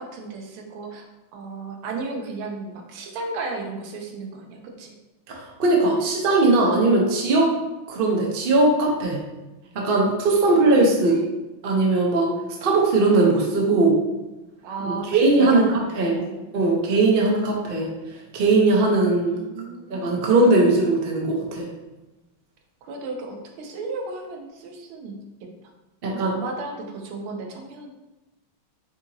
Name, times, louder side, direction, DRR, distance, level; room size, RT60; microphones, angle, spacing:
voice 1, 0.0-4.9 10.5-10.6 11.1-11.3 14.6-16.4 19.2-20.2 22.8-25.2 26.1-27.9, right 3 dB, 90° right, 2 dB, 1.6 m, -34 dB
voice 2, 5.3-7.5 7.9-9.2 9.7-11.2 11.6-12.3 12.6-14.0 14.8-16.2 16.5-17.9 18.3-19.4 19.9-21.7 26.0-26.3, right 2 dB, 70° right, -1 dB, 0.5 m, -19 dB
6.0 x 2.8 x 2.7 m, 1.1 s
omnidirectional pair, 2.3 m